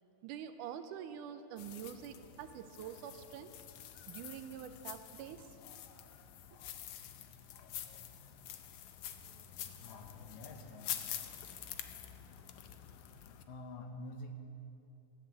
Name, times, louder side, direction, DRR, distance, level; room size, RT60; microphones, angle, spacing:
voice 1, 0.2-3.5 4.1-5.5, right 9 dB, 80° right, 9 dB, 2.1 m, -46 dB
sound 1, 1.6-13.4, left 10 dB, 90° left, 1.3 m, -47 dB
voice 2, 9.8-11.0 11.4-11.5 13.4-14.3, left 2 dB, 70° left, 5 dB, 2.1 m, -48 dB
14.5 x 10.5 x 8.0 m, 2.8 s
omnidirectional pair, 3.8 m